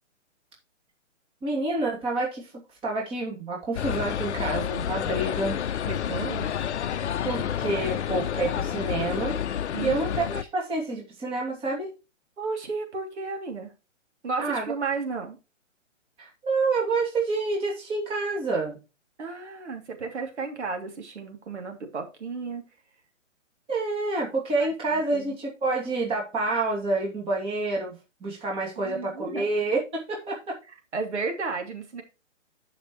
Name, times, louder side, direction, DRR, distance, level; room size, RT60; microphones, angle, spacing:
voice 1, 1.4-2.5 2.8-5.6 7.2-11.9 14.4-14.7 16.2-18.8 23.7-27.9 28.2-30.6, right 3 dB, 15° right, -2 dB, 2.7 m, -28 dB
sound 1, 3.8-10.4, left 9 dB, 65° left, 0.7 m, -29 dB
voice 2, 5.9-6.5 9.7-10.2 12.4-13.7 14.2-15.4 19.2-22.6 24.6-25.3 28.8-29.5 30.9-32.0, right 4 dB, 60° right, 4 dB, 3.0 m, -33 dB
13.0 x 5.9 x 3.1 m, 0.29 s
hypercardioid pair, 150°, 38 cm